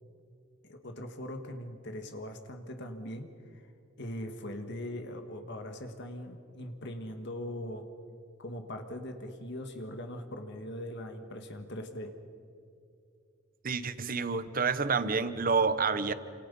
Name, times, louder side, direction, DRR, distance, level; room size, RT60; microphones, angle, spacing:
voice 1, 0.6-3.7 4.0-7.8 8.4-12.1, left 1 dB, 60° left, 5 dB, 1.9 m, -41 dB
voice 2, 13.6-16.1, right 5 dB, 45° right, 13 dB, 1.1 m, -28 dB
29.5 x 27.0 x 5.5 m, 2.4 s
head